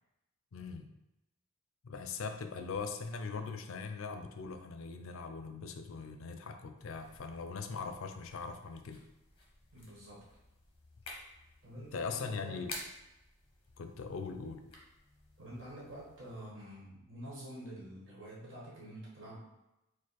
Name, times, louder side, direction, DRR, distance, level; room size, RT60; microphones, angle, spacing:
voice 1, 0.5-0.9 1.8-9.0 11.9-12.7 13.8-14.6, left 4 dB, 70° left, 7 dB, 0.4 m, -41 dB
sound 1, 6.8-16.4, left 2 dB, 25° left, 0.7 m, -53 dB
voice 2, 9.7-10.2 11.6-12.7 15.4-19.6, right 1 dB, 60° right, -6 dB, 1.3 m, -48 dB
4.9 x 2.1 x 4.2 m, 0.91 s
head